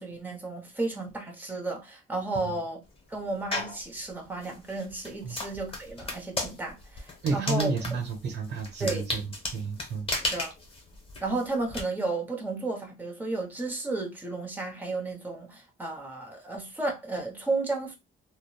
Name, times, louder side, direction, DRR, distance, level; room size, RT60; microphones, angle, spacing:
voice 1, 0.0-2.8 3.1-7.7 8.8-9.1 10.2-10.5 11.2-18.0, right 2 dB, 10° right, 0.8 m, -33 dB
sound 1, 3.5-3.8 4.4-11.8, left 2 dB, 30° left, 0.9 m, -35 dB
voice 2, 7.2-10.1, right 4 dB, 60° right, 0.9 m, -31 dB
2.8 x 2.0 x 2.3 m
cardioid pair, 90°, 20 cm